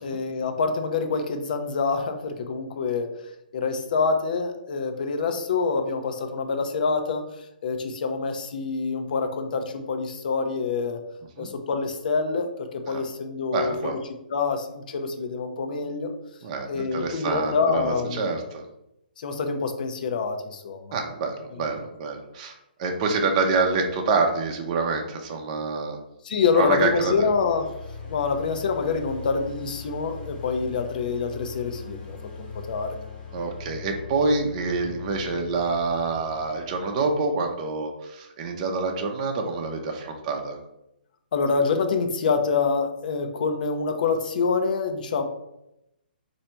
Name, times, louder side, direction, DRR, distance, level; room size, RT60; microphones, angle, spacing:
voice 1, 0.0-3.1 3.5-7.3 7.6-11.0 11.4-14.0 14.3-16.1 16.7-18.3 19.2-21.0 21.6-21.8 26.2-27.7 28.0-33.0 41.3-45.2, left 5 dB, 55° left, 6 dB, 0.7 m, -26 dB
voice 2, 13.5-14.0 16.4-18.6 20.9-26.0 26.6-27.3 33.3-40.6, right 4 dB, 35° right, 2 dB, 0.6 m, -27 dB
sound 1, 26.4-37.4, left 5 dB, 15° left, 1.0 m, -41 dB
4.2 x 2.7 x 4.3 m, 0.86 s
hypercardioid pair, 135°, 5 cm